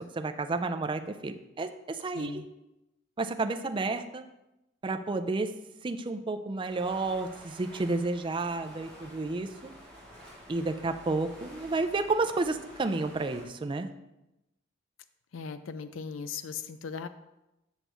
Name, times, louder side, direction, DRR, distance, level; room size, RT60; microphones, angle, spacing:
voice 1, 0.0-2.5 3.2-4.2 4.8-5.5 5.8-9.7 10.5-13.9, right 3 dB, 25° right, 7 dB, 0.4 m, -31 dB
voice 2, 2.1-2.4 15.3-17.1, left 6 dB, 80° left, 11 dB, 0.4 m, -38 dB
sound 1, 6.6-13.4, equal, 5° left, 2.5 m, -50 dB
8.1 x 6.6 x 3.0 m, 0.93 s
head